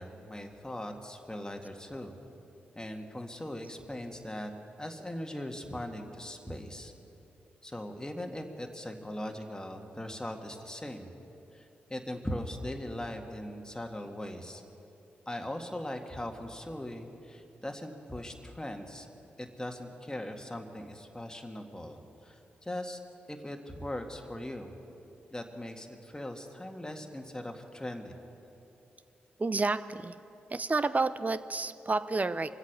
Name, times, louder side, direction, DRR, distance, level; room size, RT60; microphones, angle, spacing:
voice 1, 0.0-2.1 2.8-4.5 4.8-6.9 7.6-11.1 11.5-14.6 15.3-19.1 19.4-23.0 23.3-24.7 25.3-28.2, left 1 dB, 15° left, 3 dB, 1.9 m, -40 dB
voice 2, 29.4-30.2 30.5-32.5, right 3 dB, 35° right, 13 dB, 0.7 m, -30 dB
24.0 x 8.3 x 6.8 m, 2.9 s
supercardioid pair, 40°, 5 cm